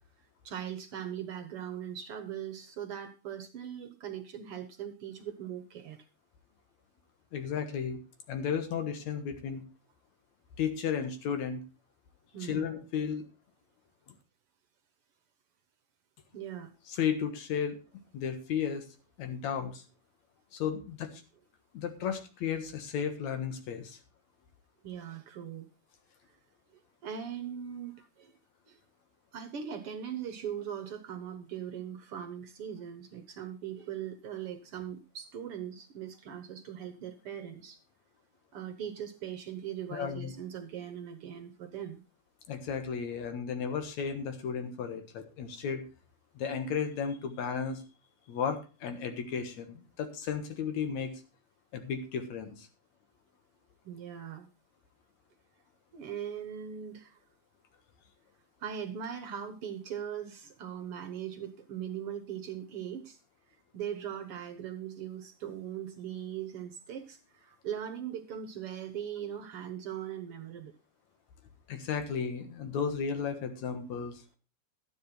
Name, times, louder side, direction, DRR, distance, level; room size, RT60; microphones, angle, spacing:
voice 1, 0.4-6.0 12.3-12.7 16.3-16.7 24.8-25.7 27.0-28.3 28.7-28.8 29.3-37.8 38.5-42.0 53.8-54.5 55.9-57.2 58.6-63.2 63.7-70.7, right 9 dB, 60° right, 8 dB, 1.7 m, -40 dB
voice 2, 7.3-8.0 8.3-9.6 10.6-11.6 12.4-13.2 16.9-17.8 18.1-18.9 19.2-19.8 20.5-21.2 21.7-24.0 39.9-40.3 42.5-45.8 46.4-47.8 48.3-51.2 51.7-52.7 71.7-74.2, left 7 dB, 75° left, 8 dB, 2.7 m, -34 dB
12.5 x 9.3 x 4.3 m, 0.32 s
omnidirectional pair, 3.3 m